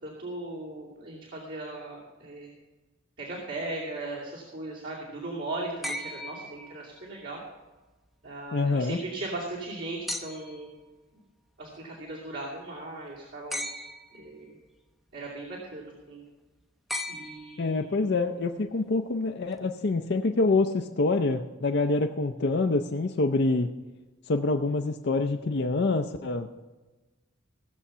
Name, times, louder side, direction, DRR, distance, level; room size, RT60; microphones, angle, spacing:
voice 1, 0.0-2.5 3.2-7.4 8.2-10.7 11.6-13.6 14.1-14.6 15.1-16.2 17.1-18.1, right 2 dB, 65° right, -6 dB, 2.7 m, -38 dB
sound 1, 5.8-7.2 10.1-10.7 13.5-14.3 16.9-17.9 19.5-19.6, left 1 dB, ahead, 0.6 m, -37 dB
voice 2, 8.5-9.0 17.6-23.7 24.3-26.6, left 3 dB, 55° left, 4 dB, 0.5 m, -26 dB
17.0 x 7.1 x 5.6 m, 1.2 s
head